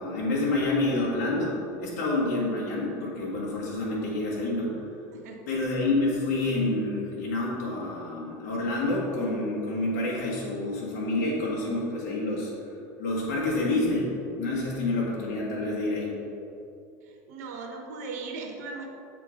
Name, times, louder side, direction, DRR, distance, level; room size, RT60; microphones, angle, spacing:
voice 1, 0.0-4.8 5.5-12.5 13.0-14.1 14.4-16.2, left 2 dB, 80° left, -5 dB, 1.6 m, -28 dB
voice 2, 17.0-18.9, right 4 dB, 90° right, 2 dB, 1.0 m, -38 dB
7.8 x 3.8 x 5.1 m, 2.8 s
supercardioid pair, 130°, 9 cm